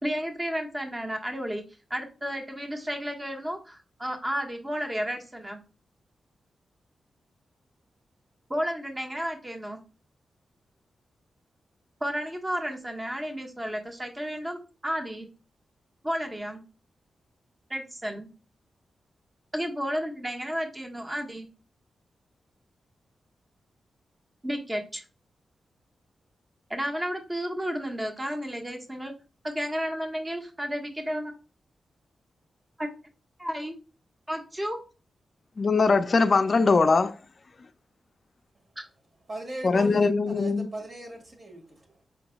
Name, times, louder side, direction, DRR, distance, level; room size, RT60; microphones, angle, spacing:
voice 1, 0.0-1.6 1.9-5.6 8.5-9.8 12.0-15.3 16.0-16.6 17.7-18.3 19.5-21.5 24.4-25.0 26.7-29.1 29.4-31.3 32.8-32.9 33.4-33.8 34.3-34.8 38.8-38.9, equal, 20° right, 1.2 m, -32 dB
voice 2, 35.6-37.2 39.6-40.7, left 4 dB, 55° left, 0.4 m, -21 dB
voice 3, 39.3-42.0, right 1 dB, 50° right, 1.8 m, -39 dB
5.4 x 3.8 x 2.3 m
supercardioid pair, 45°, 0 cm